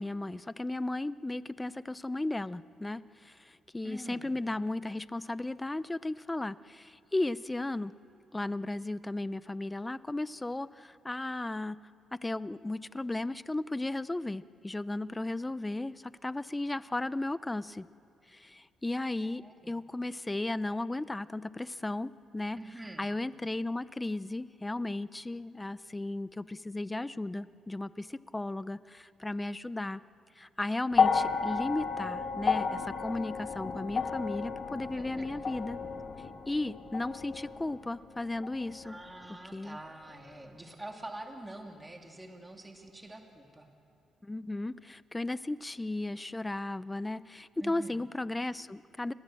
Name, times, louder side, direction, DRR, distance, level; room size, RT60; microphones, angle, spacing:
voice 1, 0.0-7.9 8.3-11.8 12.2-17.9 18.3-22.6 23.0-30.0 30.4-35.8 36.5-39.0 39.5-39.8 44.2-49.1, left 2 dB, 15° left, 16 dB, 0.6 m, -35 dB
voice 2, 3.8-4.3 19.2-19.7 22.6-23.1 34.9-35.4 38.8-43.7 47.6-48.0, right 1 dB, 15° right, 2 dB, 2.6 m, -46 dB
sound 1, 30.9-39.3 40.3-40.4, left 5 dB, 50° left, 1.8 m, -32 dB
29.5 x 20.0 x 7.7 m, 2.5 s
cardioid pair, 90°, 0 cm